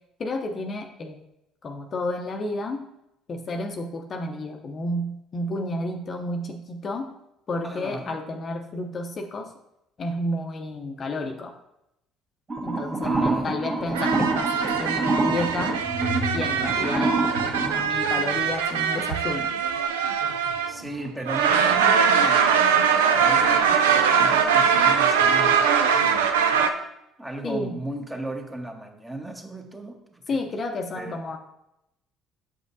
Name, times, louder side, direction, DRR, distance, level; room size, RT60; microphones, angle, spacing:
voice 1, 0.2-1.2 1.6-2.8 3.3-7.1 7.5-9.5 10.0-11.6 12.6-15.8 16.3-19.5 27.4-27.7 30.3-31.4, left 2 dB, 40° left, 4 dB, 0.6 m, -31 dB
voice 2, 7.6-8.2 13.0-13.9 20.7-22.4 23.1-25.6 25.8-26.1 27.2-30.4 31.0-31.4, right 2 dB, 15° right, 3 dB, 1.1 m, -36 dB
sound 1, 12.5-17.8, right 2 dB, 30° right, 1.5 m, -26 dB
sound 2, 13.9-20.9 21.3-26.7, right 7 dB, 80° right, 0.4 m, -22 dB
7.1 x 5.1 x 2.7 m, 0.84 s
hypercardioid pair, 55°, 0 cm